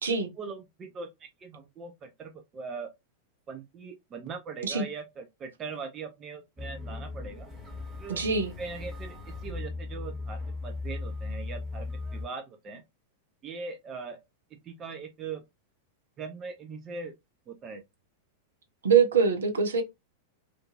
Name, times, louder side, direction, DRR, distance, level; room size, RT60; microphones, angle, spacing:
voice 1, 0.4-2.9 3.5-7.5 8.0-8.2 8.6-12.8 13.4-14.2 14.6-15.4 16.2-17.1 17.5-17.8, right 4 dB, 25° right, 0.5 m, -40 dB
sound 1, 6.6-12.3, left 3 dB, 10° right, 1.3 m, -37 dB
voice 2, 8.1-8.5 18.8-19.8, right 6 dB, 70° right, 0.6 m, -23 dB
2.5 x 2.4 x 2.4 m
figure-of-eight pair, 90°, 0 cm